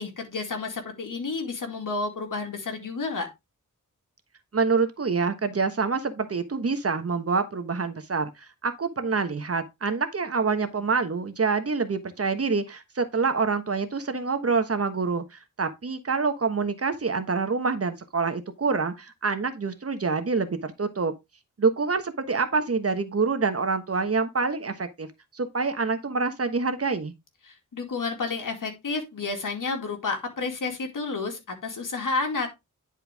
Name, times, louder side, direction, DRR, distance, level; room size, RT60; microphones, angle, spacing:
voice 1, 0.0-3.3 27.5-32.5, left 4 dB, 80° left, 2.3 m, -31 dB
voice 2, 4.5-21.1 21.6-25.1 25.3-27.1, right 4 dB, 45° right, 1.2 m, -26 dB
10.5 x 4.5 x 3.5 m
wide cardioid pair, 90°, 32 cm